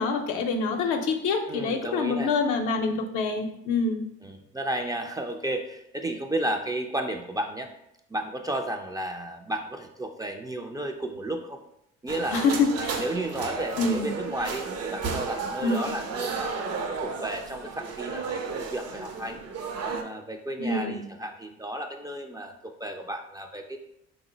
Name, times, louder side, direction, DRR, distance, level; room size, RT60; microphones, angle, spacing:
voice 1, 0.0-4.0 12.3-13.0 13.8-14.1 15.6-15.9 20.6-21.0, left 4 dB, 75° left, 5 dB, 0.6 m, -26 dB
voice 2, 1.5-2.3 4.2-7.7 8.1-11.6 12.0-12.4 12.8-16.5 16.8-19.4 19.8-23.8, right 1 dB, 15° right, 4 dB, 0.3 m, -33 dB
sound 1, 12.1-20.0, right 4 dB, 55° right, 0.6 m, -33 dB
3.6 x 2.0 x 3.7 m, 0.78 s
hypercardioid pair, 60°, 31 cm